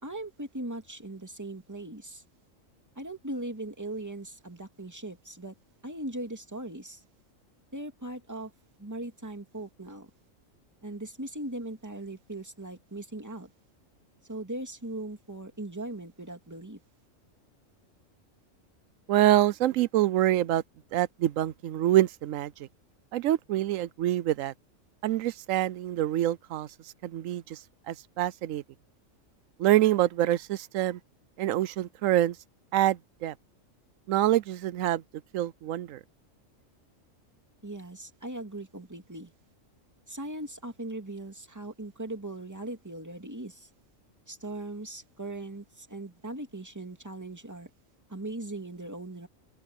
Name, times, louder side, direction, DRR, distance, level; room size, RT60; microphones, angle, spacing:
voice 1, 0.0-2.2 3.0-5.5 5.8-7.0 7.7-8.5 8.8-10.1 10.8-13.5 14.3-16.8 37.6-39.3 40.1-43.7 44.3-47.7 48.1-49.3, right 1 dB, 15° right, 2.5 m, -39 dB
voice 2, 19.1-20.6 20.9-22.5 23.1-24.5 25.0-26.7 27.0-27.6 27.9-28.6 29.6-31.0 31.4-32.4 32.7-33.3 34.1-35.0 35.3-36.0, right 13 dB, 80° right, 1.0 m, -26 dB
open air
omnidirectional pair, 1.4 m